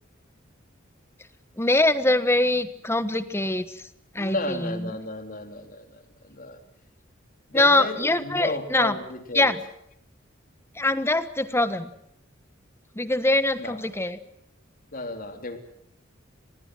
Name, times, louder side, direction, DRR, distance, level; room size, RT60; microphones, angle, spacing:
voice 1, 1.6-3.8 4.1-4.8 7.5-9.0 9.3-9.6 10.7-11.9 12.9-14.2, left 2 dB, 15° left, 12 dB, 1.2 m, -23 dB
voice 2, 4.2-6.6 7.5-9.5 13.6-13.8 14.9-15.6, left 2 dB, 45° left, 6 dB, 3.4 m, -34 dB
26.0 x 20.5 x 7.7 m, 0.73 s
head